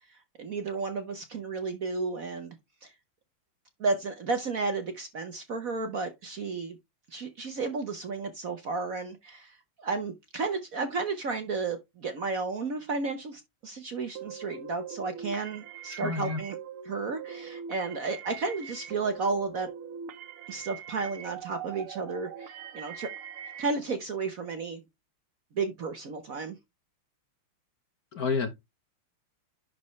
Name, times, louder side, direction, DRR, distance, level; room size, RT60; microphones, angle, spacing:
voice 1, 0.4-2.6 2.8-2.9 3.8-6.8 7.1-16.6 16.8-19.7 20.5-23.1 23.6-24.8 25.5-26.6, right 4 dB, 50° right, 1.2 m, -33 dB
sound 1, 14.1-23.7, right 8 dB, 80° right, 1.8 m, -42 dB
voice 2, 15.9-16.4 28.1-28.5, left 4 dB, 50° left, 1.5 m, -29 dB
10.5 x 4.3 x 3.2 m
omnidirectional pair, 2.4 m